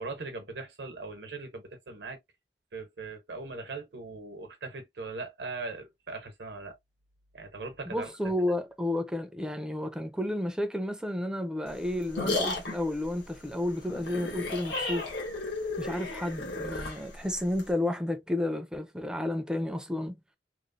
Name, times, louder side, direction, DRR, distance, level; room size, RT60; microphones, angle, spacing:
voice 1, 0.0-2.2 2.7-6.8 7.3-8.1, right 3 dB, 70° right, 0.8 m, -40 dB
voice 2, 7.9-15.1 15.8-20.2, left 1 dB, 5° right, 0.4 m, -31 dB
sound 1, 11.7-17.7, left 2 dB, 85° left, 1.0 m, -34 dB
3.0 x 2.0 x 2.6 m
head